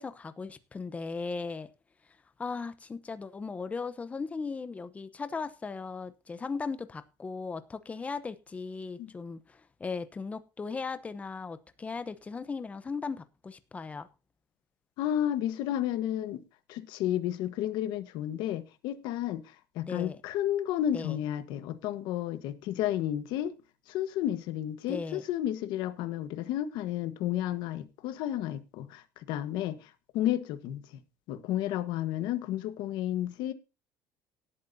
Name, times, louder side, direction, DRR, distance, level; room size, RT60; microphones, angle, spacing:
voice 1, 0.0-1.7 2.4-14.1 19.9-20.2 20.9-21.2 24.9-25.2, left 4 dB, 15° left, 0.9 m, -37 dB
voice 2, 15.0-16.4 16.7-19.4 19.7-23.5 23.9-30.8 31.3-33.5, left 12 dB, 70° left, 1.4 m, -32 dB
18.0 x 8.6 x 2.8 m
cardioid pair, 145°, 8 cm